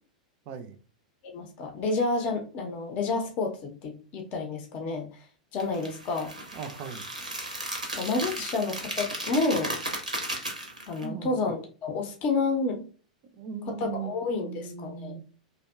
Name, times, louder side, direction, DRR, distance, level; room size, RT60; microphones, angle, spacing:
voice 1, 1.3-5.1 5.5-6.3 7.9-9.7 10.9-12.8 13.9-15.1, left 3 dB, 35° left, 0.6 m, -29 dB
sound 1, 5.6-11.0, right 1 dB, 85° right, 0.6 m, -35 dB
voice 2, 6.5-7.1 11.0-11.6 13.3-15.2, right 6 dB, 40° right, 0.4 m, -38 dB
2.6 x 2.2 x 2.2 m
figure-of-eight pair, 95°, 4 cm